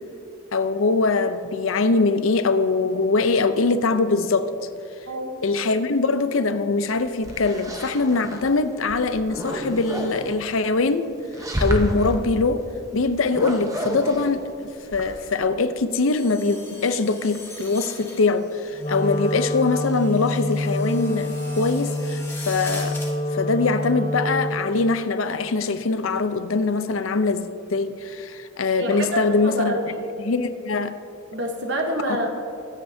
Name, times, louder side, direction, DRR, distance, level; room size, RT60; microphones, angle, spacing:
voice 1, 0.5-4.7 5.4-11.1 11.6-12.6 12.9-23.0 23.3-29.8 30.2-31.0, left 3 dB, 90° left, 0.6 m, -22 dB
sound 1, 7.0-8.5 8.9-10.3 11.2-12.2 13.2-15.3, equal, 15° right, 0.9 m, -30 dB
sound 2, 16.0-23.1, left 3 dB, 10° left, 1.1 m, -41 dB
Wind instrument woodwind instrument, 18.8-24.8, left 1 dB, 40° left, 1.5 m, -27 dB
voice 2, 28.8-30.0 31.3-32.4, right 1 dB, 60° right, 1.1 m, -27 dB
22.0 x 9.0 x 2.8 m
head